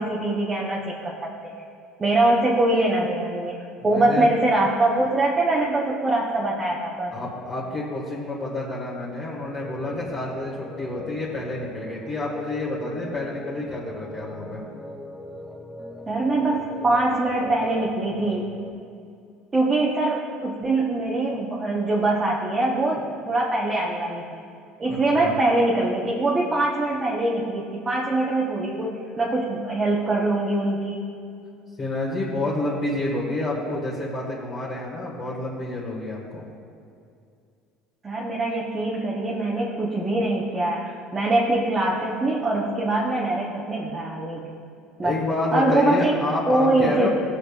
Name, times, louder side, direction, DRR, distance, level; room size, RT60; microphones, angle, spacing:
voice 1, 0.0-1.6 2.0-3.5 3.8-7.1 16.1-18.5 19.5-24.4 24.8-31.1 38.0-44.6 45.0-45.1 45.5-46.2 46.5-47.1, right 2 dB, 20° right, -4 dB, 0.9 m, -23 dB
voice 2, 3.8-4.3 7.1-14.6 24.9-25.3 31.8-36.4 45.0-47.1, left 2 dB, 30° left, -7 dB, 1.7 m, -28 dB
sound 1, 9.6-18.7, left 1 dB, ahead, 0.6 m, -40 dB
20.0 x 6.9 x 2.4 m, 2.4 s
cardioid pair, 150°, 0 cm